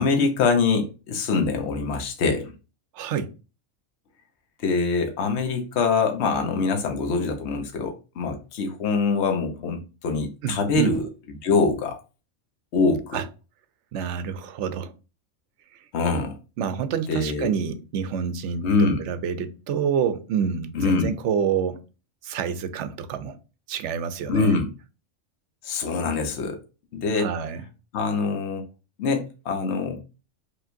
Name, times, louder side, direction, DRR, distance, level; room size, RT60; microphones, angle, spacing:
voice 1, 0.0-2.5 4.6-11.1 11.4-12.0 12.7-13.2 15.9-16.4 17.1-17.5 18.6-19.0 20.7-21.1 24.3-24.7 25.6-26.6 26.9-27.3 27.9-28.6 29.0-30.0, left 4 dB, 60° left, 1.1 m, -24 dB
voice 2, 2.9-3.3 10.4-11.0 13.1-13.3 13.9-14.9 16.6-21.8 22.2-23.4 23.7-24.6 27.1-27.6, right 7 dB, 70° right, 0.8 m, -28 dB
5.0 x 3.2 x 2.5 m
omnidirectional pair, 1.3 m